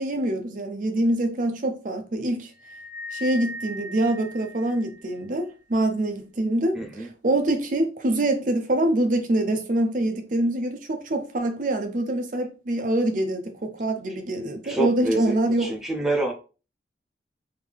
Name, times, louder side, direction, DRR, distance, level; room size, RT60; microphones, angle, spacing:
voice 1, 0.0-2.5 3.1-15.7, right 1 dB, 45° right, 0.6 m, -25 dB
sound 1, 2.6-5.2, equal, 55° left, 0.8 m, -38 dB
voice 2, 6.7-7.1 14.1-14.2 14.6-16.3, right 2 dB, ahead, 0.6 m, -27 dB
3.5 x 2.7 x 3.3 m
head